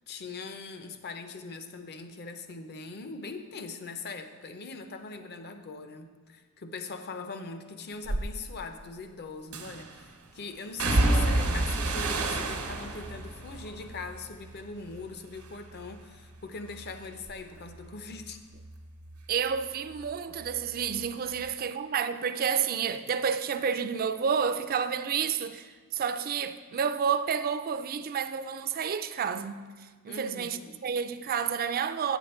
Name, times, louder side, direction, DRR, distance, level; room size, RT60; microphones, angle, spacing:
voice 1, 0.1-18.4 21.3-21.5 30.1-30.8, left 4 dB, 50° left, 0.6 m, -41 dB
sound 1, 8.0-8.3 9.5-10.0 10.8-15.0 15.3-16.0 16.3-19.6 19.9-21.0 21.3-21.5, right 2 dB, 80° right, 1.1 m, -30 dB
voice 2, 19.3-32.2, right 7 dB, 40° right, 0.4 m, -30 dB
9.1 x 7.1 x 4.3 m
head